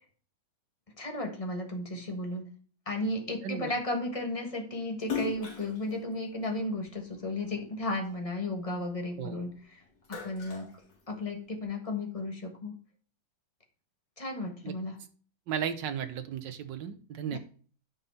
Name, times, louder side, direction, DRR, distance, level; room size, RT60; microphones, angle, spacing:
voice 1, 1.0-2.4 2.9-9.8 10.2-10.7 11.1-12.7 14.2-15.0 17.3-17.4, left 1 dB, 20° left, 3 dB, 1.2 m, -34 dB
voice 2, 3.4-3.7 9.2-9.4 14.6-14.7 15.5-17.4, right 8 dB, 70° right, 9 dB, 1.6 m, -35 dB
Splash splatter, 5.0-7.6 8.0-9.5 9.8-11.5, left 7 dB, 60° left, 2.6 m, -39 dB
9.7 x 5.3 x 4.3 m, 0.42 s
omnidirectional pair, 2.2 m